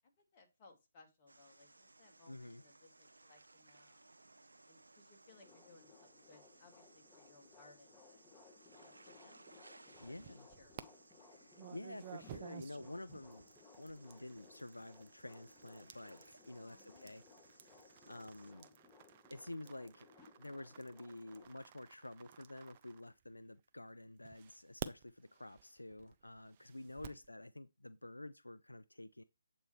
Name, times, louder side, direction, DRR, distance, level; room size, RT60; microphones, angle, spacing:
voice 1, 0.0-4.1 4.7-8.3 8.8-9.4 9.8-10.9 11.3-11.7 16.5-17.2 18.3-18.9 26.9-27.2, left 3 dB, 30° left, 1.6 m, -65 dB
sound 1, 1.3-18.5, right 2 dB, 75° right, 0.6 m, -64 dB
voice 2, 2.3-2.6 10.0-10.5 11.2-13.5 13.8-18.7 19.3-20.1 20.4-29.2, left 1 dB, 85° left, 0.4 m, -50 dB
sound 2, 5.3-21.5, left 4 dB, 10° left, 1.6 m, -63 dB
sound 3, 9.9-10.8 11.6-23.6 24.2-27.3, right 11 dB, 30° right, 0.4 m, -53 dB
7.8 x 3.1 x 4.6 m
figure-of-eight pair, 145°, 0 cm